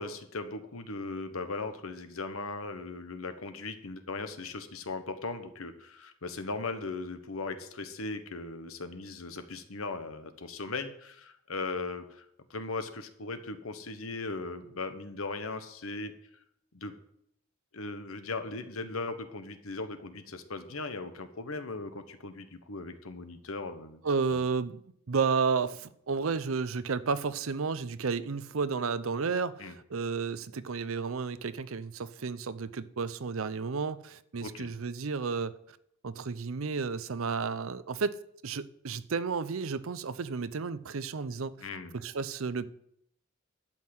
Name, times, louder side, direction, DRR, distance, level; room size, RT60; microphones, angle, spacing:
voice 1, 0.0-16.1 16.7-16.9 17.7-24.0 24.3-24.4 29.6-29.7 34.4-34.7 41.6-42.0, left 3 dB, 80° left, 1.2 m, -38 dB
voice 2, 24.0-24.8 25.1-35.5 36.0-41.7 41.9-42.7, right 5 dB, 75° right, 0.6 m, -32 dB
12.0 x 5.6 x 7.8 m
head